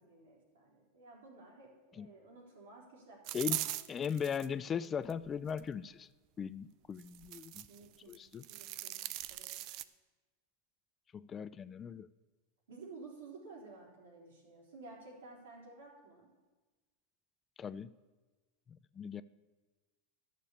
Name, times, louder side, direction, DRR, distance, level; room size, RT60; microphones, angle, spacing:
voice 1, 0.0-3.7 7.7-9.0 9.3-9.5 12.7-16.3, right 3 dB, 80° right, -2 dB, 4.1 m, -54 dB
sound 1, 3.2-4.5 5.0-5.6 7.0-7.8 8.1-9.8, right 15 dB, 50° right, 0.5 m, -40 dB
voice 2, 3.9-6.1 6.4-7.7 8.1-8.4 11.1-12.1 17.6-17.9 18.7-19.2, left 7 dB, 25° left, 16 dB, 0.4 m, -38 dB
11.5 x 6.8 x 8.5 m, 1.2 s
hypercardioid pair, 105°, 0 cm